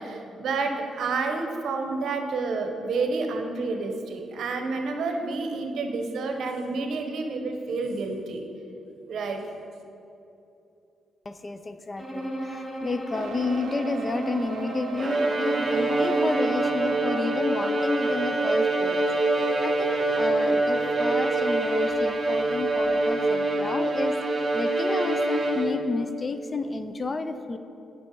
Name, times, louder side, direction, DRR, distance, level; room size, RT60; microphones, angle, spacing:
voice 1, 0.0-8.4 9.1-9.4, right 3 dB, 65° right, 4 dB, 0.9 m, -29 dB
voice 2, 11.3-19.1 19.6-24.1 24.5-27.6, left 3 dB, 25° left, 10 dB, 0.3 m, -31 dB
Bowed string instrument, 12.0-17.4, equal, ahead, 1.0 m, -35 dB
sound 1, 13.1-23.1, right 6 dB, 85° right, 0.4 m, -38 dB
Bowed string instrument 2, 15.0-26.0, right 2 dB, 30° right, 0.9 m, -25 dB
9.4 x 5.4 x 4.5 m, 2.8 s
cardioid pair, 140°, 0 cm